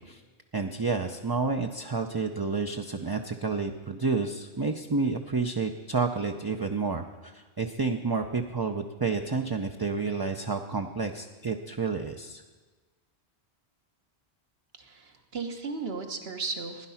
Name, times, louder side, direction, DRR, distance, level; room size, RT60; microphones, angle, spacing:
voice 1, 0.5-12.4, right 4 dB, 30° right, 4 dB, 0.5 m, -30 dB
voice 2, 14.8-16.9, right 4 dB, 65° right, 5 dB, 1.5 m, -35 dB
16.5 x 10.5 x 5.7 m, 1.3 s
omnidirectional pair, 1.1 m